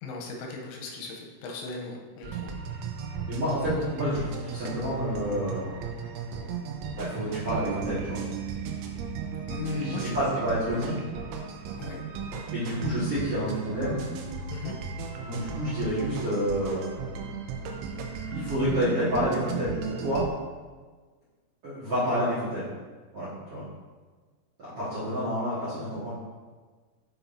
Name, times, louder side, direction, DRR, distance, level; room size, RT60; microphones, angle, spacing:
voice 1, 0.0-2.6 9.5-10.2 11.8-12.0 14.5-14.8, left 4 dB, 90° left, 0 dB, 3.1 m, -37 dB
sound 1, 2.2-20.3, right 6 dB, 85° right, 2.8 m, -36 dB
voice 2, 3.3-5.7 6.7-8.2 9.7-11.0 12.5-14.0 15.2-16.9 18.3-20.2 21.6-22.7 23.1-23.6 24.6-26.1, equal, 65° right, -14 dB, 1.5 m, -29 dB
7.0 x 5.8 x 2.7 m, 1.4 s
omnidirectional pair, 5.6 m